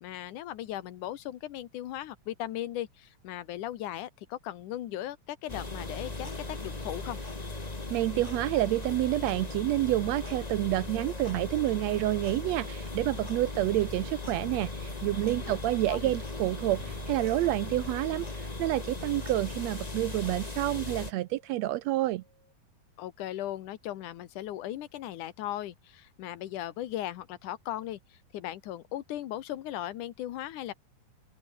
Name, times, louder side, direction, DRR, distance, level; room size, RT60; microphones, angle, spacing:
voice 1, 0.0-7.2 15.5-15.6 15.9-16.1 23.0-30.7, left 13 dB, 80° left, 2.7 m, -37 dB
sound 1, 5.5-21.1, left 2 dB, 15° left, 1.7 m, -38 dB
sound 2, 6.5-17.2, left 3 dB, 55° left, 9.2 m, -55 dB
sound 3, 7.0-22.5, right 1 dB, 10° right, 5.2 m, -61 dB
voice 2, 7.9-22.2, right 16 dB, 80° right, 1.6 m, -29 dB
open air
omnidirectional pair, 3.5 m